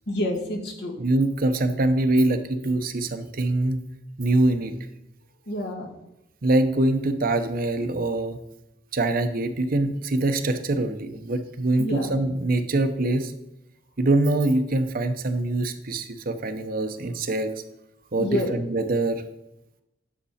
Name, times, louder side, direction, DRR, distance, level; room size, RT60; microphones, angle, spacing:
voice 1, 0.1-0.9 5.5-5.9 11.8-12.1 18.2-18.5, left 1 dB, 65° left, 2 dB, 1.8 m, -28 dB
voice 2, 1.0-3.8 4.2-4.7 6.4-8.4 8.9-13.3 14.0-17.5 18.1-19.2, right 2 dB, 50° right, 8 dB, 0.8 m, -24 dB
10.0 x 6.8 x 4.2 m, 0.88 s
head